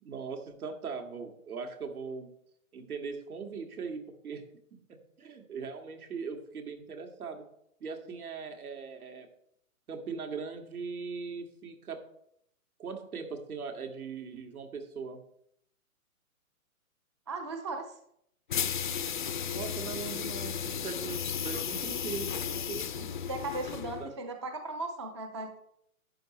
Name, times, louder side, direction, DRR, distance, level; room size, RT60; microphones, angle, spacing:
voice 1, 0.1-2.3 2.7-4.4 5.2-7.4 7.8-9.3 9.9-12.0 12.8-15.2 19.5-23.2 24.0-24.1, right 5 dB, 75° right, 4 dB, 2.1 m, -40 dB
voice 2, 17.3-17.9 23.3-25.6, right 2 dB, 20° right, 6 dB, 0.4 m, -37 dB
sound 1, 18.5-24.1, left 8 dB, 35° left, 0.4 m, -34 dB
11.5 x 8.7 x 3.2 m, 0.72 s
hypercardioid pair, 145°, 44 cm